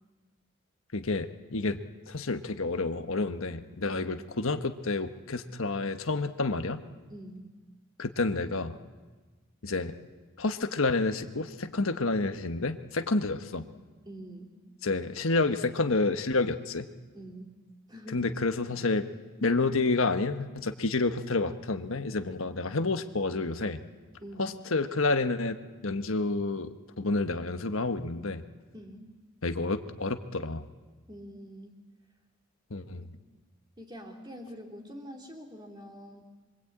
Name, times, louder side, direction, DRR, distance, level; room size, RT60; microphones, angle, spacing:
voice 1, 0.9-1.8 2.1-6.8 8.0-8.7 9.6-9.9 10.4-13.6 14.8-16.9 18.1-19.1 19.4-23.8 24.4-25.6 25.8-28.4 29.4-30.7 32.7-33.1, left 3 dB, 80° left, 8 dB, 1.3 m, -29 dB
voice 2, 7.1-7.5 14.0-14.5 17.1-17.5 17.9-18.3 24.2-24.5 28.7-29.1 31.1-31.8 33.0-33.1 33.8-36.2, equal, 20° right, 1 dB, 3.3 m, -45 dB
26.0 x 23.5 x 8.8 m, 1.3 s
head